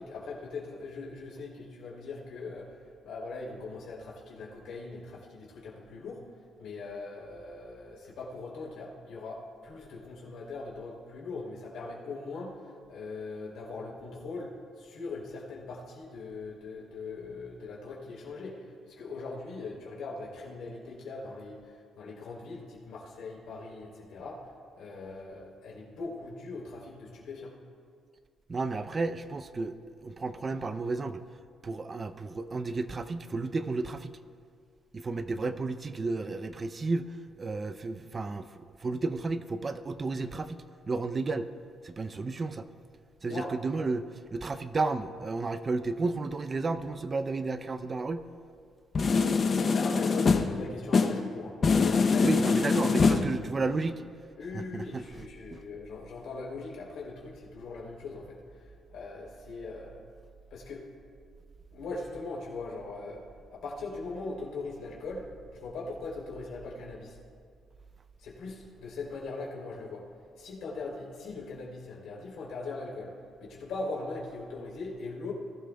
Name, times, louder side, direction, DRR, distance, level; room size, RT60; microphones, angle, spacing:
voice 1, 0.0-2.7 3.0-6.2 6.6-18.6 18.9-24.4 24.7-27.5 43.2-43.5 49.6-52.5 54.4-58.4 58.9-60.0 60.5-60.9 61.7-63.2 63.5-65.3 65.6-67.2 68.2-70.1 70.4-73.1 73.4-75.3, left 3 dB, 80° left, -3 dB, 3.3 m, -40 dB
voice 2, 28.5-31.2 31.6-34.2 34.9-41.5 41.8-42.7 43.2-44.0 44.3-48.3 52.2-54.0 54.5-55.2 55.5-55.6, right 3 dB, 35° right, 11 dB, 0.5 m, -32 dB
sound 1, 48.9-50.7 50.9-51.3 51.6-53.4, left 4 dB, 45° left, 0.7 m, -24 dB
19.5 x 12.5 x 2.3 m, 2.1 s
cardioid pair, 90°, 0 cm